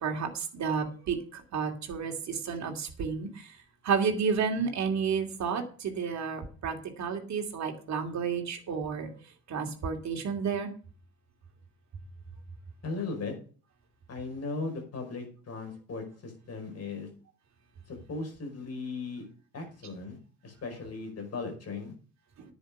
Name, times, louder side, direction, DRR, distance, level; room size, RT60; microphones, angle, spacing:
voice 1, 0.0-3.3 3.8-9.1 9.5-10.7, right 6 dB, 45° right, 4 dB, 2.6 m, -31 dB
voice 2, 12.8-13.3 14.1-17.1 17.9-19.3 19.5-20.2 20.4-21.9, left 3 dB, 40° left, 3 dB, 5.3 m, -37 dB
10.0 x 7.3 x 6.7 m, 0.39 s
figure-of-eight pair, 50°, 40 cm